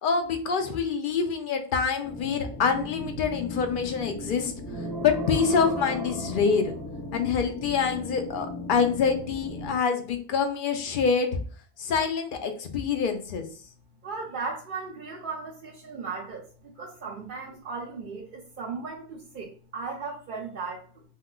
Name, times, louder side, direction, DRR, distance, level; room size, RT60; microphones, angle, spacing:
voice 1, 0.0-4.5 5.0-6.7 7.1-11.4 11.8-13.5, left 6 dB, 60° left, 6 dB, 0.7 m, -26 dB
sound 1, 2.0-9.8, left 1 dB, 15° left, 0.5 m, -38 dB
sound 2, 4.6-7.3, left 1 dB, 80° right, 0.9 m, -35 dB
voice 2, 14.0-21.0, right 4 dB, 55° right, -4 dB, 0.7 m, -37 dB
3.6 x 2.4 x 2.2 m, 0.42 s
omnidirectional pair, 1.1 m